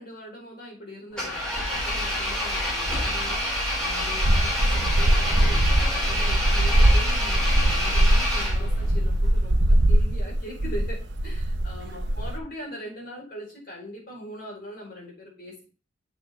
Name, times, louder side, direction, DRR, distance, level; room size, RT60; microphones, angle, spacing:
voice 1, 0.0-3.5 3.8-15.7, equal, 50° left, -2 dB, 4.4 m, -41 dB
Engine, 1.1-8.9, equal, 5° left, 3.5 m, -27 dB
sound 1, 4.2-12.4, right 1 dB, 60° right, 0.9 m, -22 dB
7.8 x 7.1 x 3.5 m, 0.37 s
head